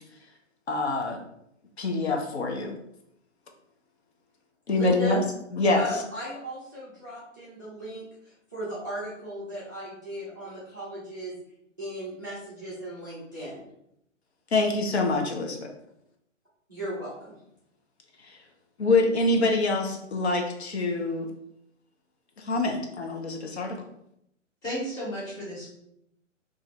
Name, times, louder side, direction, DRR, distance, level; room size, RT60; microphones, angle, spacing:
voice 1, 0.7-1.2 1.8-2.8 4.7-5.2 5.5-5.8 14.5-15.7 18.2-18.4 18.8-21.3 22.4-23.8, left 2 dB, 55° left, 2 dB, 0.6 m, -25 dB
voice 2, 4.7-5.2 5.8-11.3 11.8-13.6 16.7-17.3, equal, 15° right, -10 dB, 0.3 m, -36 dB
voice 3, 24.6-25.7, equal, 10° left, -7 dB, 0.7 m, -33 dB
2.5 x 2.0 x 3.8 m, 0.76 s
figure-of-eight pair, 125°, 38 cm